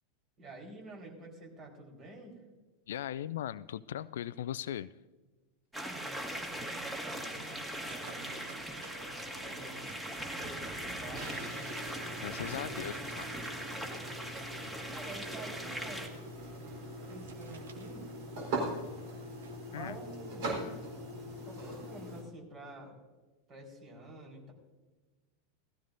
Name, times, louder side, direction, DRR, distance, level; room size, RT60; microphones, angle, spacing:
voice 1, 0.4-2.4 5.7-8.3 9.3-11.4 12.6-13.1 14.8-16.2 17.1-18.1 19.7-20.5 21.4-23.0 23.5-24.5, right 2 dB, 35° right, 1 dB, 4.4 m, -49 dB
voice 2, 2.9-4.9 12.2-13.3 19.7-20.0, left 11 dB, 65° left, 17 dB, 0.3 m, -38 dB
sound 1, 5.7-16.1, right 1 dB, 10° right, 1.9 m, -40 dB
sound 2, 7.4-19.6, right 4 dB, 70° right, 1.1 m, -55 dB
sound 3, 11.1-22.2, right 1 dB, 55° right, 4.2 m, -41 dB
18.0 x 15.0 x 2.7 m, 1.3 s
figure-of-eight pair, 90°, 0 cm